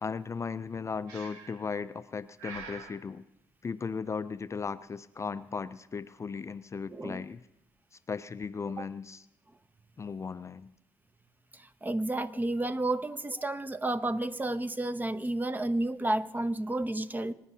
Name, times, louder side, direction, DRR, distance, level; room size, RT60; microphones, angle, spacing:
voice 1, 0.0-3.2 3.6-7.4 7.9-9.3 10.0-10.7, left 5 dB, 30° left, 14 dB, 0.4 m, -37 dB
Breathing, 1.1-1.7 2.4-3.0, right 5 dB, 85° right, 1.1 m, -45 dB
voice 2, 6.9-7.2 8.8-8.9 11.5-17.3, right 2 dB, 20° right, 13 dB, 0.7 m, -31 dB
26.0 x 10.0 x 2.8 m, 0.88 s
supercardioid pair, 55°, 10 cm